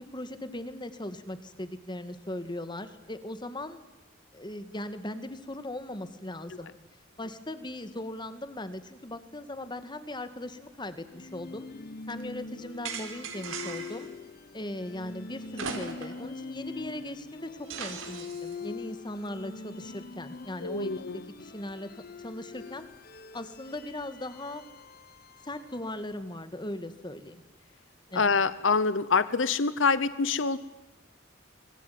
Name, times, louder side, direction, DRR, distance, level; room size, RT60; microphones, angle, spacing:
voice 1, 0.0-3.8 4.3-6.7 7.2-11.7 12.1-14.1 14.5-21.9 22.2-22.9 23.3-24.6 25.4-27.4 28.1-28.3, left 1 dB, 25° left, 11 dB, 2.0 m, -39 dB
sound 1, 11.1-26.2, left 4 dB, 50° left, 1.2 m, -43 dB
sound 2, 12.8-14.1 15.5-16.3 16.6-16.7 17.7-18.5, right 5 dB, 90° right, 4.2 m, -38 dB
voice 2, 20.6-21.3 28.1-30.6, left 4 dB, 70° left, 16 dB, 0.9 m, -26 dB
25.5 x 22.5 x 9.5 m, 0.99 s
head